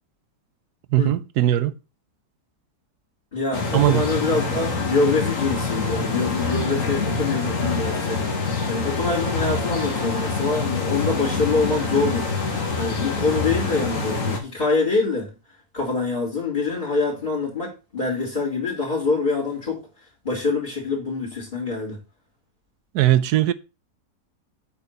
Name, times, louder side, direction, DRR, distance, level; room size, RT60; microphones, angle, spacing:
voice 1, 0.9-1.7 3.7-4.0 22.9-23.5, right 13 dB, 80° right, 1.2 m, -19 dB
voice 2, 3.3-8.2 8.7-12.3 12.8-15.3 15.7-19.8 20.2-22.0, left 3 dB, 25° left, 3.4 m, -25 dB
sound 1, 3.5-14.4, left 4 dB, 55° left, 2.1 m, -25 dB
8.2 x 4.6 x 6.8 m
omnidirectional pair, 1.7 m